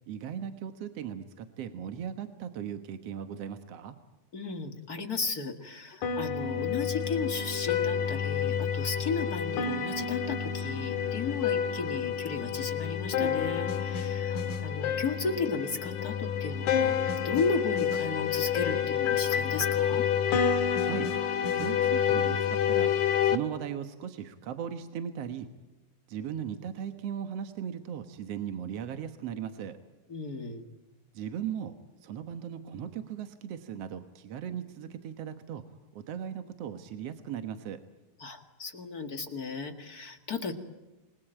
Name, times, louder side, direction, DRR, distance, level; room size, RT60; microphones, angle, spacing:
voice 1, 0.1-4.0 20.7-21.1 21.5-23.0 23.2-25.5 26.1-29.8 31.1-31.8 32.0-35.6 35.9-37.8, right 9 dB, 60° right, 8 dB, 1.8 m, -37 dB
voice 2, 4.3-17.0 17.2-20.1 30.1-30.6 38.2-40.5, left 4 dB, 35° left, 6 dB, 1.6 m, -34 dB
sound 1, 6.0-23.4, left 8 dB, 60° left, 2.9 m, -29 dB
28.0 x 21.5 x 9.0 m, 1.1 s
omnidirectional pair, 4.1 m